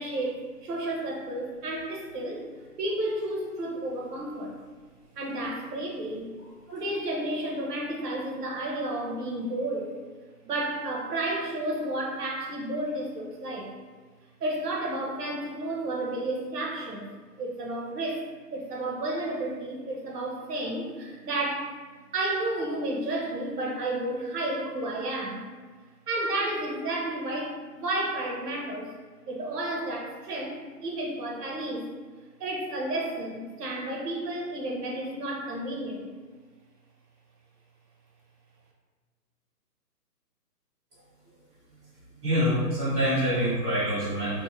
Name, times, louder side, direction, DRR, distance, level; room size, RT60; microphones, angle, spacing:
voice 1, 0.0-2.4 2.8-4.5 5.2-6.3 6.7-10.0 10.4-13.7 14.4-17.1 17.4-18.3 18.5-21.7 22.1-25.5 26.1-28.9 29.3-31.9 32.4-36.1, right 1 dB, 65° right, -1 dB, 0.8 m, -31 dB
voice 2, 42.2-44.4, equal, 20° right, -13 dB, 1.0 m, -26 dB
2.7 x 2.1 x 2.6 m, 1.4 s
hypercardioid pair, 150°, 49 cm